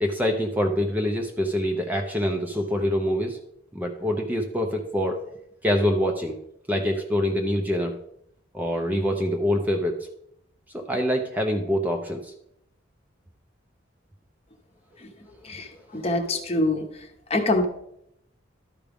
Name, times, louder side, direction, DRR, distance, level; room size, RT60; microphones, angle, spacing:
voice 1, 0.0-3.4 3.7-5.2 5.6-6.4 6.7-8.0 8.5-10.1 10.7-12.3, equal, 10° right, 2 dB, 0.5 m, -25 dB
voice 2, 15.4-16.8 17.3-17.7, left 2 dB, 30° left, 4 dB, 0.9 m, -25 dB
12.0 x 4.9 x 3.5 m, 0.77 s
head